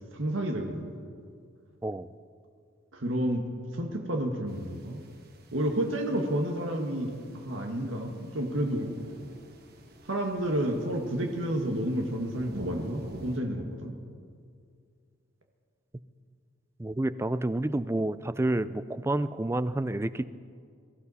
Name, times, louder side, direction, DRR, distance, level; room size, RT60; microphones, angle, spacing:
voice 1, 0.1-0.9 2.9-3.4 3.7-5.0 5.5-8.9 10.1-13.9, right 1 dB, 70° right, 2 dB, 1.5 m, -30 dB
sound 1, 4.5-13.4, right 1 dB, 50° right, 1.5 m, -47 dB
voice 2, 16.8-20.2, right 1 dB, 10° right, 14 dB, 0.3 m, -29 dB
23.0 x 15.0 x 4.2 m, 2.2 s
head